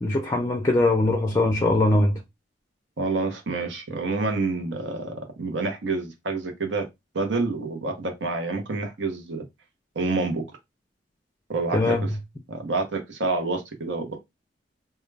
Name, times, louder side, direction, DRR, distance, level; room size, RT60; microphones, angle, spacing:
voice 1, 0.0-2.2 11.7-12.1, left 2 dB, 20° left, 0.4 m, -21 dB
voice 2, 3.0-6.9 7.1-9.4 10.0-10.4 11.5-12.1 12.5-14.2, right 3 dB, 90° right, 0.7 m, -28 dB
2.2 x 2.2 x 3.2 m
head